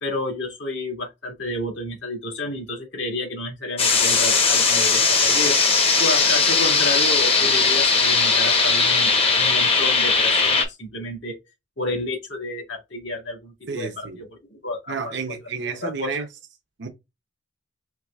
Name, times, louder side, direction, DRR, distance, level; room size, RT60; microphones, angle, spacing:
voice 1, 0.0-5.6 6.0-11.4 11.8-15.2 15.6-16.3, left 2 dB, 65° left, 1.9 m, -30 dB
sound 1, 3.8-10.6, left 4 dB, 30° left, 0.9 m, -19 dB
voice 2, 13.7-14.2 14.9-16.3 16.8-16.9, right 5 dB, 60° right, 0.7 m, -30 dB
4.6 x 3.1 x 2.3 m
head